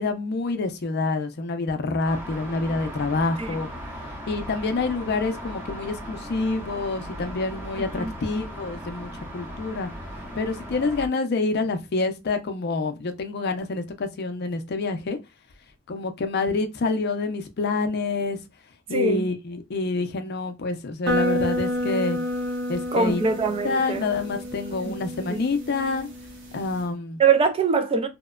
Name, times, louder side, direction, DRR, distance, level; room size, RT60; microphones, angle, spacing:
voice 1, 0.0-3.7 4.3-9.9 10.4-15.2 15.9-18.4 18.9-22.2 22.7-23.2 23.6-26.1 26.5-27.2, left 3 dB, 55° left, 0.5 m, -27 dB
sound 1, 2.0-11.1, equal, 10° right, 0.7 m, -37 dB
voice 2, 18.9-19.2 22.9-24.1 25.3-25.4 27.2-28.1, right 5 dB, 30° right, 0.3 m, -22 dB
sound 2, 21.1-26.8, equal, 65° right, 0.8 m, -30 dB
2.8 x 2.1 x 2.2 m
head